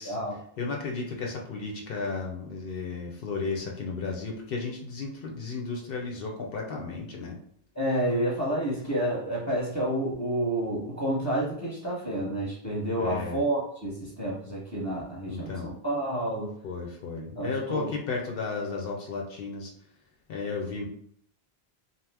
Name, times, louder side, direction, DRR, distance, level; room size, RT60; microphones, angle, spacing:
voice 1, 0.0-0.4 7.7-16.5 17.3-17.9, right 1 dB, 20° right, -4 dB, 0.8 m, -29 dB
voice 2, 0.6-7.4 13.0-13.4 15.3-15.7 16.6-19.7 20.3-20.9, left 4 dB, 65° left, 0 dB, 0.8 m, -34 dB
2.8 x 2.1 x 3.3 m, 0.68 s
omnidirectional pair, 1.1 m